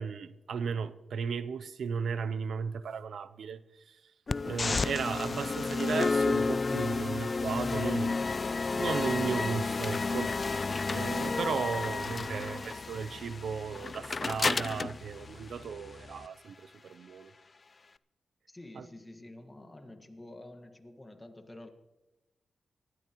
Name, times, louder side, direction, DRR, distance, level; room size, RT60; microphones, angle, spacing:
voice 1, 0.0-4.0 4.4-8.2 8.7-10.3 10.9-17.3 18.8-18.9, right 6 dB, 80° right, 0.6 m, -35 dB
sound 1, 4.3-16.3, left 4 dB, 40° left, 0.4 m, -31 dB
voice 2, 18.5-21.7, left 1 dB, 20° left, 1.7 m, -49 dB
25.5 x 12.5 x 3.0 m
cardioid pair, 90°, 0 cm